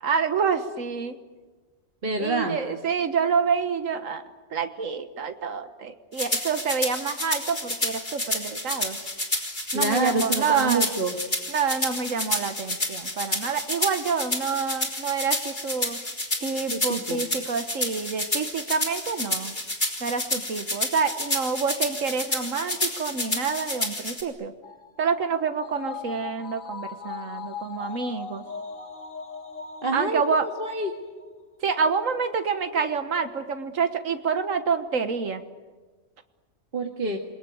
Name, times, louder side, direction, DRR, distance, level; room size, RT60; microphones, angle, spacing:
voice 1, 0.0-1.2 2.2-4.2 4.5-9.0 9.7-10.9 11.5-16.0 16.4-19.5 20.0-24.5 25.0-28.4 29.9-30.5 31.6-35.4, right 5 dB, 85° right, 8 dB, 1.7 m, -27 dB
voice 2, 2.0-2.6 9.7-11.2 16.7-17.2 29.8-31.0 36.7-37.2, right 3 dB, 45° right, 2 dB, 2.1 m, -27 dB
sound 1, 6.2-24.2, left 1 dB, 35° left, 4.1 m, -30 dB
sound 2, 24.6-31.3 31.6-31.7, left 6 dB, 80° left, 1.9 m, -40 dB
28.5 x 22.0 x 9.3 m, 1.3 s
omnidirectional pair, 1.3 m